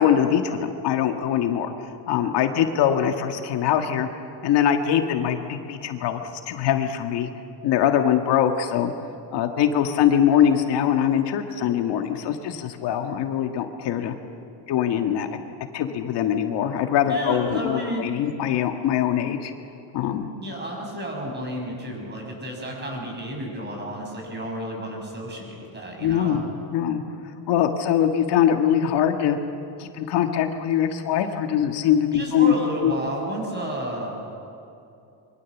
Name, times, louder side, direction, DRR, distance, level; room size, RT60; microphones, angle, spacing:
voice 1, 0.0-1.7 2.1-4.1 4.4-7.3 7.6-8.9 9.3-14.1 14.7-15.3 15.7-19.5 19.9-20.3 26.0-26.4 26.7-27.0 27.5-29.4 29.8-32.5 32.8-32.9, left 9 dB, 65° left, 5 dB, 1.7 m, -22 dB
voice 2, 17.1-18.1 20.4-26.4 32.1-34.2, equal, 25° right, 1 dB, 6.4 m, -31 dB
26.0 x 23.5 x 7.2 m, 2.6 s
cardioid pair, 160°, 44 cm